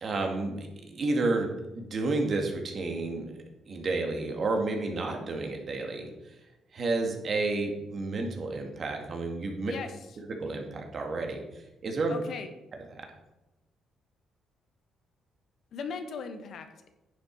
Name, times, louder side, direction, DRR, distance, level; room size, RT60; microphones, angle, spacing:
voice 1, 0.0-3.3 3.7-6.1 6.7-9.7 10.4-11.4 11.8-12.1 12.9-13.1, right 3 dB, 50° right, 3 dB, 2.0 m, -31 dB
voice 2, 12.1-12.5 15.7-16.9, left 5 dB, 65° left, 8 dB, 1.1 m, -38 dB
10.0 x 7.3 x 4.7 m, 0.97 s
cardioid pair, 90°, 0 cm